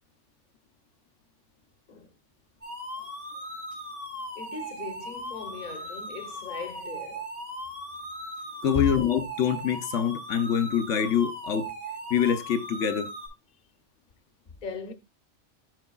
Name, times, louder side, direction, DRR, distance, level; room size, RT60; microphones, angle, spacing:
sound 1, 2.6-13.3, equal, 65° right, 4.4 m, -38 dB
voice 1, 4.3-7.3 8.7-9.0 14.5-14.9, left 5 dB, 45° left, 1.0 m, -37 dB
voice 2, 8.6-11.7 12.1-13.1, left 8 dB, 85° left, 1.1 m, -25 dB
12.5 x 4.9 x 2.3 m
omnidirectional pair, 1.2 m